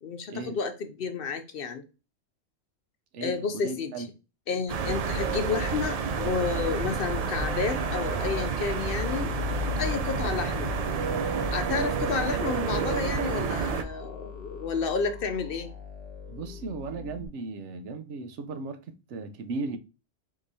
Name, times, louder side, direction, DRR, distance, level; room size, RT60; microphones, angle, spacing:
voice 1, 0.0-1.8 3.2-3.9 4.5-9.3 9.8-10.8 11.5-15.7, left 5 dB, 60° left, 0.7 m, -31 dB
voice 2, 3.1-4.1 16.3-19.8, right 3 dB, 80° right, 0.9 m, -36 dB
sound 1, 4.7-13.8, right 5 dB, 60° right, 0.4 m, -29 dB
sound 2, 7.3-17.3, left 7 dB, 10° right, 1.9 m, -40 dB
4.8 x 3.6 x 2.6 m
omnidirectional pair, 1.2 m